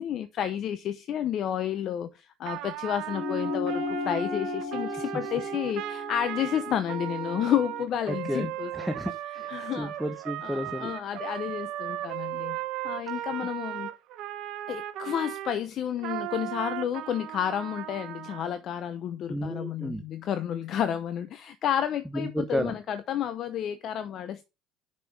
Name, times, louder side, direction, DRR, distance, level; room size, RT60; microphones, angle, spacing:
voice 1, 0.0-8.9 9.5-9.9 10.4-12.6 12.8-13.9 14.7-24.4, left 10 dB, 55° left, 0.9 m, -31 dB
Trumpet, 2.5-15.5 16.0-18.5, right 13 dB, 65° right, 1.1 m, -36 dB
sound 1, 3.1-7.9, left 4 dB, 35° left, 4.4 m, -35 dB
voice 2, 8.1-8.5 8.7-10.9 13.1-13.2 19.3-20.0 22.1-22.7, equal, ahead, 0.9 m, -32 dB
6.7 x 6.4 x 5.0 m
supercardioid pair, 90°, 0 cm